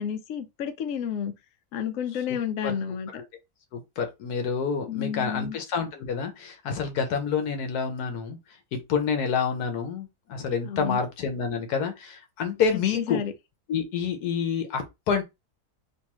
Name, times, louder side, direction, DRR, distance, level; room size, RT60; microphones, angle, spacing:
voice 1, 0.0-1.3 1.7-3.1 4.9-5.6 10.6-11.0 12.7-13.3, left 8 dB, 65° left, 0.9 m, -31 dB
voice 2, 3.7-8.4 8.9-13.2 13.7-15.2, left 6 dB, 80° left, 1.4 m, -28 dB
3.4 x 2.6 x 3.0 m
omnidirectional pair, 1.6 m